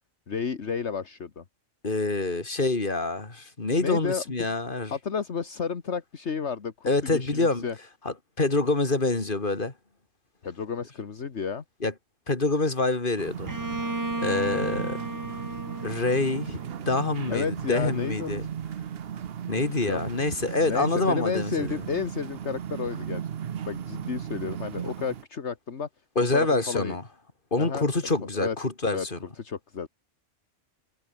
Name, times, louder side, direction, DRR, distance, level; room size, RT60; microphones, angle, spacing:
voice 1, 0.3-1.4 3.8-4.2 4.9-7.8 10.4-11.6 17.3-18.5 19.8-20.0 20.7-23.2 23.7-25.9 26.3-27.0 27.6-27.9 28.4-28.6 28.9-29.1 29.4-29.9, left 6 dB, 65° left, 1.8 m, -31 dB
voice 2, 1.8-5.0 6.8-7.6 8.0-9.7 11.8-11.9 12.3-13.5 14.2-15.0 15.8-18.5 19.5-21.8 26.1-27.0 27.5-29.2, left 3 dB, 40° left, 3.2 m, -26 dB
sound 1, 13.2-25.2, right 9 dB, 55° right, 1.0 m, -36 dB
Bowed string instrument, 13.5-17.2, right 2 dB, 15° right, 1.3 m, -34 dB
omnidirectional pair, 1.3 m